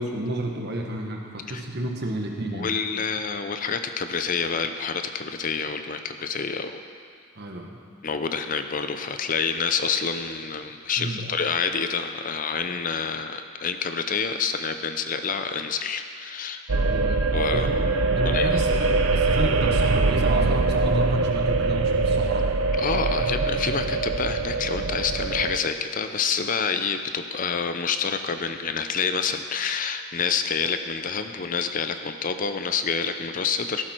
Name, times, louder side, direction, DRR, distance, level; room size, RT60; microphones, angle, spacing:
voice 1, 0.0-2.7 7.4-7.7 11.0-11.3 16.8-17.3 17.5-17.8 18.1-22.5, right 1 dB, 50° right, 1 dB, 1.5 m, -31 dB
voice 2, 2.5-6.8 8.0-16.6 17.3-17.7 18.2-18.6 22.8-33.8, left 5 dB, 40° left, 8 dB, 0.5 m, -28 dB
sound 1, 16.7-25.6, right 3 dB, 70° right, 0.7 m, -23 dB
14.5 x 12.0 x 4.5 m, 2.1 s
head